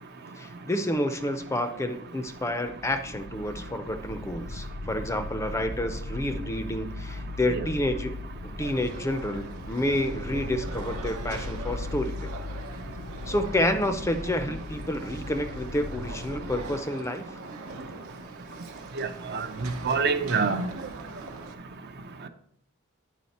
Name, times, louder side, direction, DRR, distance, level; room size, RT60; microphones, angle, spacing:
voice 1, 0.4-8.1 8.4-12.3 13.3-17.4, left 1 dB, 15° left, 8 dB, 0.5 m, -29 dB
sound 1, 2.5-16.8, left 2 dB, 70° left, 0.6 m, -38 dB
sound 2, 8.6-21.5, right 3 dB, 80° right, 0.9 m, -42 dB
voice 2, 19.0-20.7, right 4 dB, 50° right, 8 dB, 0.6 m, -26 dB
9.3 x 5.0 x 4.1 m, 0.71 s
head